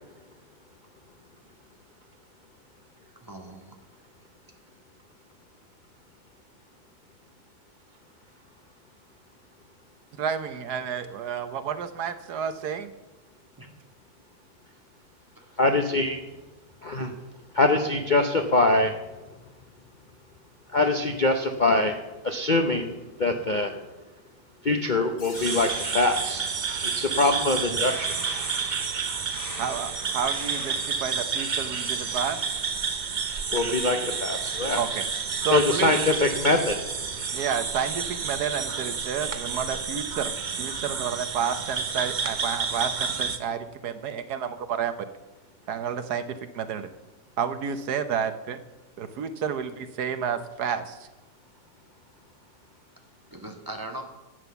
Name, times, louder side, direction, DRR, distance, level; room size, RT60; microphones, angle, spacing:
voice 1, 3.2-3.8 13.6-13.7 15.4-15.6 53.3-54.0, right 1 dB, 10° right, 3 dB, 1.7 m, -40 dB
voice 2, 10.2-12.9 29.6-32.6 34.8-35.0 35.4-35.9 37.3-40.3 40.6-44.9 45.7-46.2 46.5-46.9 47.4-48.6 49.0-51.1, right 7 dB, 70° right, 11 dB, 1.3 m, -30 dB
voice 3, 15.6-16.2 16.8-17.1 17.5-18.9 20.7-23.8 24.6-26.5 26.8-28.2 33.5-34.8 35.5-36.9, left 2 dB, 40° left, 5 dB, 0.7 m, -24 dB
sound 1, 25.2-31.2, left 3 dB, 75° left, 2.7 m, -43 dB
sound 2, 25.3-43.4, right 5 dB, 40° right, 0.7 m, -30 dB
12.5 x 8.9 x 7.0 m, 1.1 s
omnidirectional pair, 1.8 m